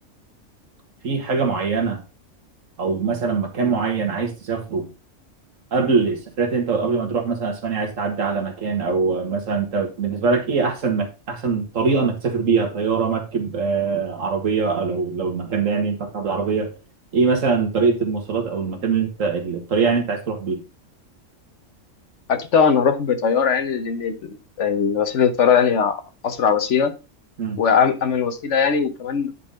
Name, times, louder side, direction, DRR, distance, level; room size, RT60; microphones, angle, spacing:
voice 1, 1.0-2.0 2.8-4.9 5.7-16.7 17.1-20.6 27.4-27.6, right 5 dB, 80° right, 5 dB, 2.0 m, -22 dB
voice 2, 22.3-26.9 27.6-29.3, left 6 dB, 65° left, 9 dB, 1.2 m, -20 dB
9.7 x 4.1 x 3.7 m, 0.29 s
omnidirectional pair, 1.3 m